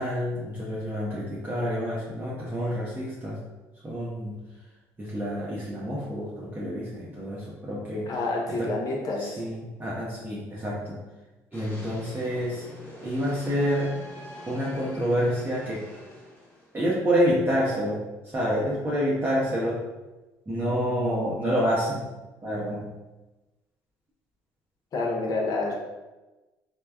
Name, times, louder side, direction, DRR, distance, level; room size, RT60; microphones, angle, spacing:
voice 1, 0.0-3.4 3.8-4.4 5.0-8.1 8.6-8.7 9.2-11.0 11.5-12.6 13.0-14.0 14.5-15.8 16.7-19.8 20.5-22.1 22.4-22.9, equal, 25° right, -7 dB, 0.7 m, -28 dB
voice 2, 8.1-9.5 24.9-25.7, left 3 dB, 50° left, -1 dB, 0.8 m, -28 dB
sound 1, 11.5-17.0, left 1 dB, 25° left, 1.1 m, -45 dB
3.3 x 2.2 x 2.2 m, 1.1 s
supercardioid pair, 70°, 8 cm